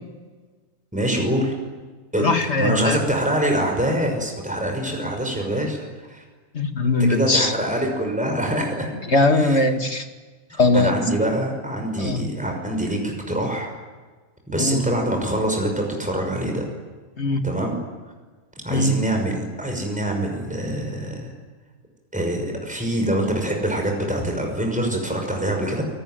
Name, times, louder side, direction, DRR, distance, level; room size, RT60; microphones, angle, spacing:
voice 1, 0.9-1.5 2.1-2.3 2.6-6.2 7.0-8.9 9.3-9.6 10.5-13.8 14.5-16.7 17.4-17.8 18.6-21.3 22.1-25.8, right 1 dB, 5° right, 2 dB, 5.9 m, -25 dB
voice 2, 2.2-3.0 6.5-7.5 9.1-10.1 10.6-10.9 12.0-12.2 14.6-14.8 17.2-17.5 18.7-19.0, left 2 dB, 50° left, 5 dB, 2.5 m, -20 dB
28.5 x 21.0 x 9.3 m, 1.4 s
omnidirectional pair, 1.5 m